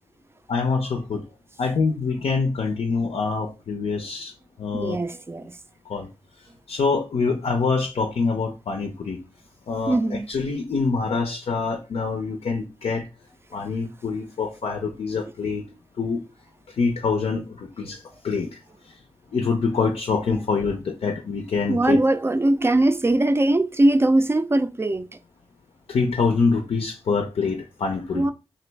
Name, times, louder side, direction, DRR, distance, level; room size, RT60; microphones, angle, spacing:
voice 1, 0.5-1.2 1.6-4.3 4.6-5.0 5.9-6.1 6.7-9.2 9.7-13.1 13.5-15.7 16.0-16.2 16.8-18.6 19.3-22.0 25.9-28.3, left 4 dB, 80° left, 0.5 m, -25 dB
voice 2, 4.7-5.5 9.9-10.3 21.7-25.1 28.1-28.3, right 1 dB, 25° right, 0.4 m, -21 dB
3.0 x 2.5 x 3.2 m
cardioid pair, 40°, 10 cm